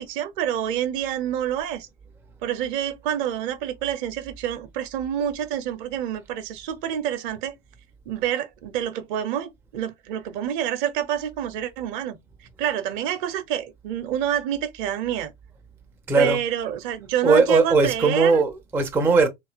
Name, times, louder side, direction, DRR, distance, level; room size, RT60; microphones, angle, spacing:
voice 1, 0.0-1.9 2.4-7.6 8.1-12.2 12.6-15.3 16.2-18.4, right 10 dB, 55° right, 0.6 m, -27 dB
voice 2, 16.1-16.4 17.2-19.3, right 4 dB, 10° right, 0.4 m, -19 dB
2.6 x 2.4 x 2.3 m
figure-of-eight pair, 70°, 30 cm